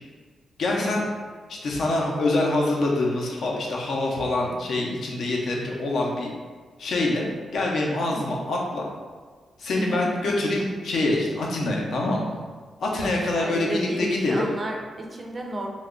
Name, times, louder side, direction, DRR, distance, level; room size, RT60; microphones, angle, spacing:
voice 1, 0.6-1.1 1.5-6.3 6.8-8.8 9.6-12.4 12.8-14.4, left 2 dB, 60° left, -1 dB, 0.6 m, -25 dB
voice 2, 8.1-8.4 9.8-10.2 12.9-15.7, right 1 dB, 25° right, 2 dB, 0.4 m, -33 dB
3.0 x 2.3 x 3.6 m, 1.5 s
wide cardioid pair, 150°, 0 cm